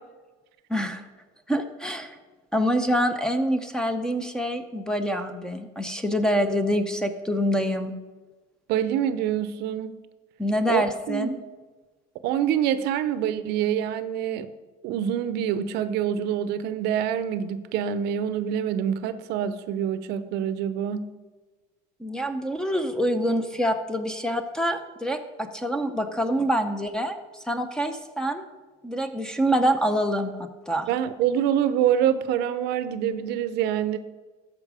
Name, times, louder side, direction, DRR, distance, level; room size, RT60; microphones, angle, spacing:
voice 1, 0.7-1.0 1.5-2.2 2.5-7.9 10.4-11.4 22.0-28.4 28.8-30.9, equal, 5° left, 8 dB, 0.7 m, -26 dB
voice 2, 8.7-10.0 10.7-11.4 12.2-14.5 14.8-21.1 30.9-34.0, right 9 dB, 60° right, 13 dB, 0.6 m, -26 dB
13.5 x 5.1 x 4.8 m, 1.3 s
cardioid pair, 130°, 19 cm